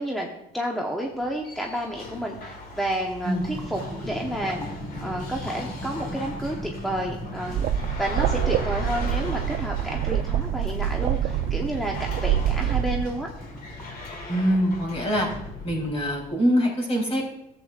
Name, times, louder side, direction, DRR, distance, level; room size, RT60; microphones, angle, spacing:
voice 1, 0.0-7.7 8.0-13.3, right 1 dB, ahead, 0 dB, 0.9 m, -31 dB
sound 1, 1.1-16.3, left 3 dB, 60° left, 2.0 m, -40 dB
sound 2, 3.3-7.6 8.2-9.5 9.8-15.9, equal, 15° left, 3.0 m, -39 dB
sound 3, 7.5-13.0, right 10 dB, 60° right, 0.4 m, -26 dB
voice 2, 14.3-15.3 15.6-17.2, equal, 35° left, -1 dB, 3.5 m, -23 dB
13.5 x 7.9 x 2.4 m, 0.90 s
cardioid pair, 110°, 17 cm